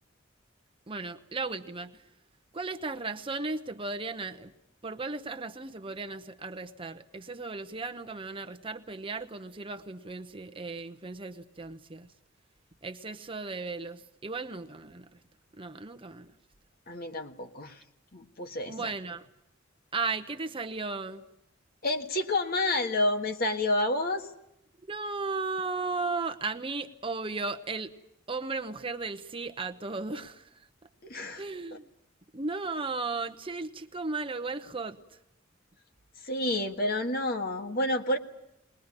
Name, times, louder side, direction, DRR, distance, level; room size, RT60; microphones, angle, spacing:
voice 1, 0.9-2.0 2.5-4.5 4.8-12.1 12.8-15.2 15.6-16.3 18.7-19.3 19.9-21.2 24.8-27.9 28.3-30.7 31.4-31.8 32.3-35.0, right 3 dB, 25° right, 7 dB, 0.9 m, -35 dB
voice 2, 16.9-17.8 18.1-18.7 21.8-24.3 31.0-31.4 36.2-38.2, left 1 dB, 50° left, 6 dB, 1.7 m, -29 dB
21.0 x 20.5 x 9.8 m, 0.82 s
head